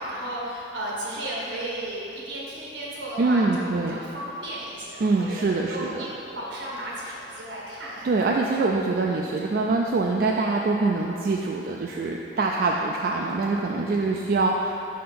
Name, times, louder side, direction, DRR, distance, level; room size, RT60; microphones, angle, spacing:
voice 1, 0.0-8.1, right 1 dB, 85° right, -5 dB, 1.5 m, -34 dB
voice 2, 3.2-4.0 5.0-6.0 8.0-14.7, right 3 dB, 50° right, -1 dB, 0.3 m, -24 dB
5.5 x 4.3 x 5.5 m, 2.9 s
head